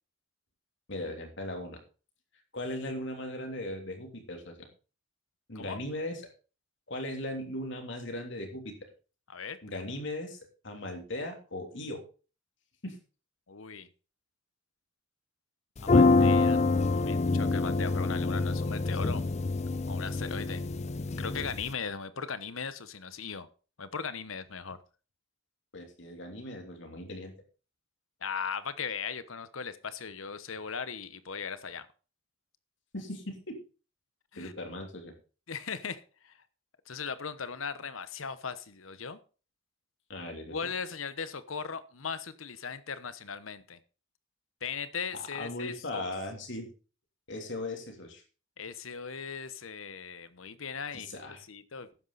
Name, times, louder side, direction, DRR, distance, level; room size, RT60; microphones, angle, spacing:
voice 1, 0.9-1.8 2.5-4.7 5.5-6.2 6.9-8.7 9.6-12.0 12.8-13.0 25.7-27.3 32.9-33.6 34.4-35.1 40.1-40.7 45.2-46.7 47.3-48.2 50.9-51.4, left 1 dB, 60° left, 4 dB, 3.2 m, -38 dB
voice 2, 9.3-9.8 13.5-13.9 15.8-19.2 19.9-20.6 21.2-23.5 23.8-24.8 28.2-31.9 34.3-34.5 35.5-36.4 36.9-39.2 40.5-43.8 44.6-46.1 48.6-51.9, left 6 dB, 85° left, 14 dB, 1.1 m, -38 dB
sound 1, 15.8-21.7, left 3 dB, 35° left, 0.5 m, -26 dB
12.5 x 9.5 x 4.1 m, 0.35 s
head